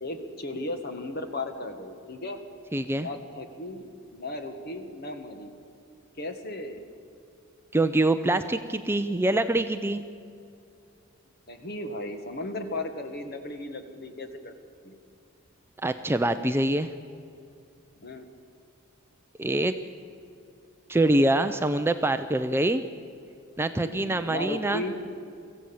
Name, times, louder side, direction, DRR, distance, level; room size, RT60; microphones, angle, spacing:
voice 1, 0.0-2.4 2.9-5.5 6.2-6.8 11.5-14.5 14.8-15.0 18.0-18.3 23.8-25.0, left 1 dB, 50° left, 7 dB, 1.7 m, -36 dB
voice 2, 2.7-3.1 7.7-10.0 15.8-16.9 19.4-19.7 20.9-22.8 23.6-24.8, right 1 dB, 10° right, 9 dB, 0.5 m, -24 dB
23.5 x 15.0 x 7.2 m, 2.5 s
head